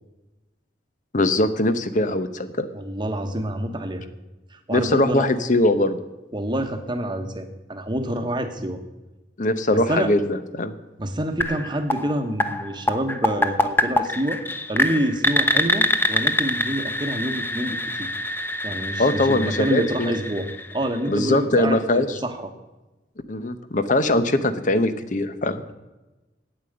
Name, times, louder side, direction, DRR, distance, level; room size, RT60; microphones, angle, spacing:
voice 1, 1.1-2.7 4.7-6.0 9.4-10.7 19.0-20.2 21.1-22.1 23.3-25.6, left 1 dB, 45° left, 11 dB, 0.8 m, -21 dB
voice 2, 2.7-4.0 4.5-5.2 6.3-8.8 9.7-10.1 11.0-14.4 14.7-18.1 18.6-20.5 20.7-22.5, right 1 dB, 25° right, 6 dB, 1.1 m, -27 dB
sound 1, 11.4-21.2, left 2 dB, 10° left, 0.6 m, -25 dB
8.8 x 8.7 x 7.8 m, 1.1 s
head